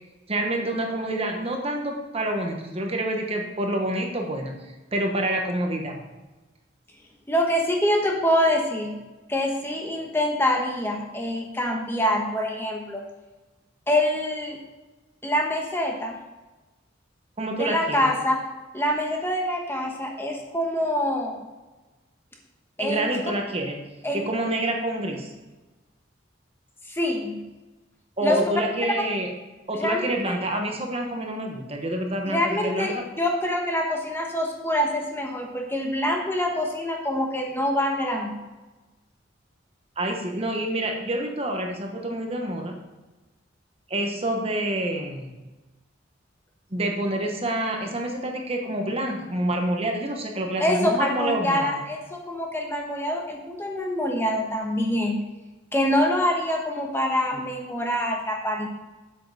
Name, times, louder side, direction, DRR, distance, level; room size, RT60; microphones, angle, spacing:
voice 1, 0.3-6.0 17.4-18.1 22.8-23.8 24.1-25.3 28.2-29.3 29.7-33.0 40.0-42.8 43.9-45.3 46.7-51.8, right 1 dB, 30° right, 2 dB, 1.2 m, -27 dB
voice 2, 7.3-9.0 9.3-13.0 13.9-14.6 15.2-16.2 17.6-18.4 18.7-21.3 22.8-23.2 24.0-24.2 26.9-27.4 28.2-28.4 29.0-29.1 29.8-30.3 32.3-38.4 50.6-55.2 55.7-58.7, left 1 dB, 10° left, 1 dB, 1.1 m, -25 dB
8.1 x 7.7 x 4.9 m, 1.2 s
head